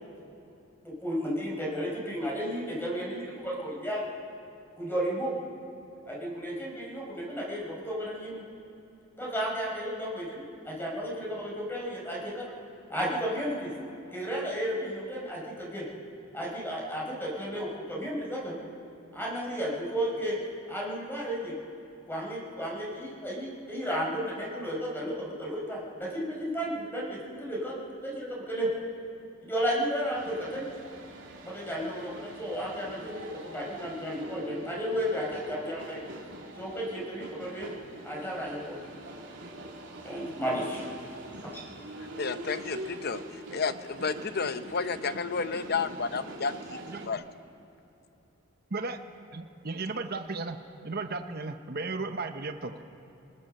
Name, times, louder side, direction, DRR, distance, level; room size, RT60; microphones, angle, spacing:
voice 1, 0.8-4.1 4.8-5.3 6.1-8.4 9.2-12.5 12.9-13.7 14.1-15.8 16.3-18.6 19.1-20.4 20.7-21.6 22.1-28.7 29.4-30.7 31.4-36.0 36.6-37.7 38.0-38.8 40.0-40.9 41.4-41.6, equal, 10° left, -4 dB, 5.4 m, -33 dB
sound 1, 30.1-47.1, right 1 dB, 65° right, 3.2 m, -44 dB
voice 2, 42.0-46.8 47.1-47.2, left 5 dB, 55° left, 12 dB, 0.8 m, -32 dB
voice 3, 46.7-47.0 48.7-49.0 49.3-50.6 50.8-52.8, right 3 dB, 50° right, 7 dB, 1.0 m, -35 dB
27.5 x 20.0 x 6.6 m, 2.9 s
head